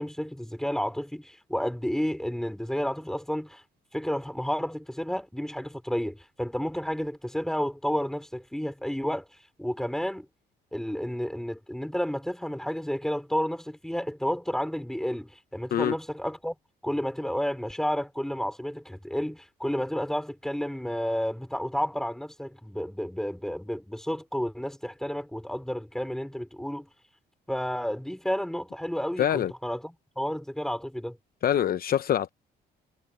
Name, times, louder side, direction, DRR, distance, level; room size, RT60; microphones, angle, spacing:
voice 1, 0.0-3.6 3.9-9.3 9.6-10.3 10.7-16.5 16.8-26.9 27.5-31.2, equal, 5° left, 4.5 m, -31 dB
voice 2, 29.2-29.5 31.4-32.3, left 10 dB, 60° left, 0.8 m, -24 dB
cardioid pair, 95°, 18 cm